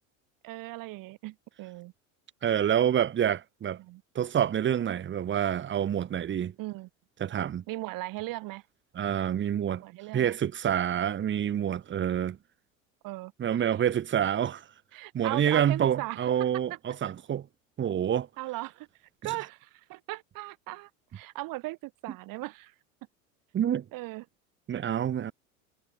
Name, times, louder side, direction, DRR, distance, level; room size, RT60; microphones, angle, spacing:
voice 1, 0.4-1.9 3.8-4.0 6.6-6.9 7.7-8.6 9.8-10.4 13.0-13.7 14.9-16.8 18.4-18.9 19.2-22.7 23.9-24.2, right 20 dB, 55° right, 2.7 m, -38 dB
voice 2, 2.4-3.8 4.1-6.5 7.2-7.6 8.9-9.8 10.1-12.4 13.4-14.6 15.1-17.5 17.8-18.3 23.5-23.8 24.7-25.3, right 9 dB, 30° right, 1.3 m, -27 dB
hypercardioid pair, 95°, 41 cm